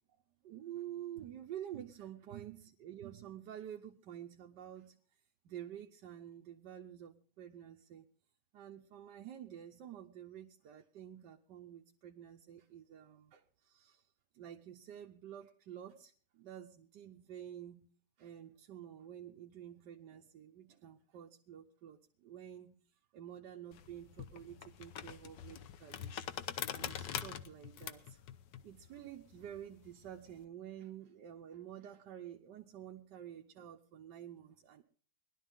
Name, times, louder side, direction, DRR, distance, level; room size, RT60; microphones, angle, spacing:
voice 1, 0.4-5.0 5.4-8.1 8.5-14.1 14.3-17.9 18.2-22.8 23.1-26.1 26.7-28.2 28.6-34.8, right 10 dB, 80° right, 2 dB, 1.5 m, -49 dB
sound 1, 23.7-30.4, left 9 dB, 90° left, 1.5 m, -44 dB
20.5 x 12.0 x 3.6 m, 0.43 s
omnidirectional pair, 1.8 m